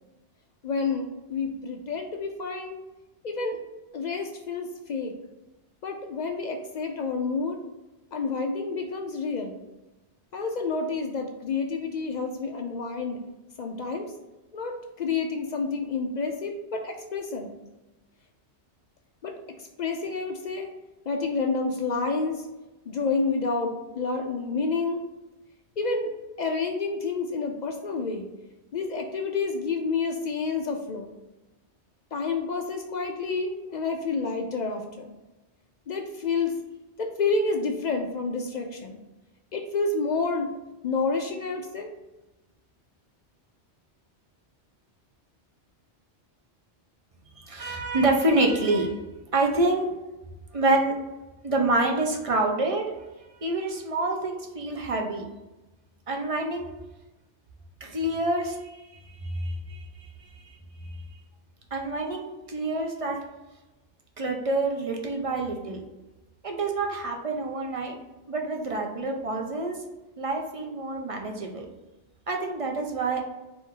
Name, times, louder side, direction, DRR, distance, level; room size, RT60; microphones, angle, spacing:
voice 1, 0.6-2.8 3.2-3.6 3.9-5.1 5.8-7.6 8.1-9.6 10.3-13.2 13.6-14.1 14.5-17.5 19.2-19.4 19.8-20.7 21.1-22.4 22.9-25.0 25.8-26.1 26.4-28.3 28.7-31.1 32.1-35.1 35.9-36.5 37.0-39.0 39.5-40.5 40.8-41.9, left 4 dB, 55° left, 3 dB, 0.5 m, -29 dB
voice 2, 47.4-49.0 49.3-49.9 50.5-50.9 51.4-52.8 53.4-55.2 56.1-56.7 57.8-58.8 59.2-60.5 61.7-63.2 64.2-65.8 66.4-68.0 68.3-69.8 70.2-71.7 72.3-73.2, right 2 dB, 40° right, 2 dB, 0.6 m, -27 dB
4.4 x 2.6 x 3.7 m, 1.1 s
omnidirectional pair, 1.2 m